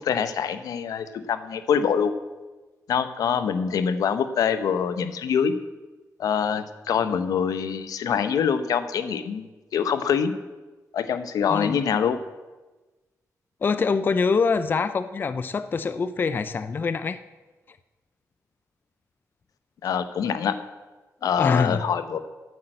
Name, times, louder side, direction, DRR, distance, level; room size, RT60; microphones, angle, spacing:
voice 1, 0.0-2.1 2.9-5.5 6.2-10.4 10.9-12.2 19.8-20.6 21.2-22.2, left 7 dB, 85° left, 11 dB, 0.8 m, -25 dB
voice 2, 11.5-11.9 13.6-17.2 21.4-21.8, left 5 dB, 35° left, 13 dB, 0.4 m, -24 dB
9.1 x 8.4 x 7.7 m, 1.2 s
wide cardioid pair, 135°, 6 cm